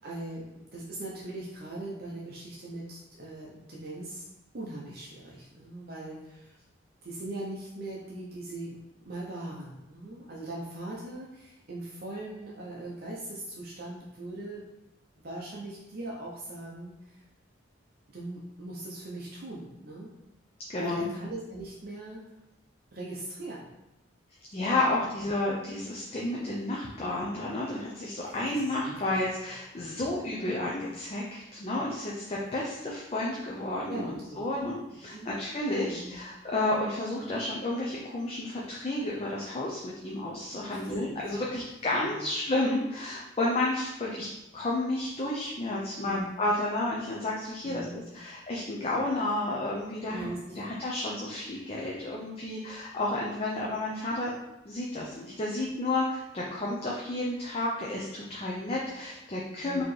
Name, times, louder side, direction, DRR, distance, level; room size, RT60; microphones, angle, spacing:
voice 1, 0.0-4.2 4.5-6.6 7.0-8.8 9.0-14.6 15.2-17.2 18.1-20.1 20.8-22.4 22.9-23.6 24.7-24.9 28.5-29.0 33.9-34.5 35.1-35.3 35.8-36.2 40.7-40.9 41.4-41.5 42.1-42.3 46.0-46.3 47.6-48.0 50.1-50.7 59.6-59.8, right 2 dB, 50° right, -4 dB, 0.6 m, -40 dB
voice 2, 20.7-21.1 24.5-44.3 44.5-47.8 48.1-50.3 50.5-54.3 54.6-59.8, left 2 dB, 30° left, -4 dB, 0.5 m, -31 dB
4.2 x 2.8 x 3.2 m, 0.94 s
head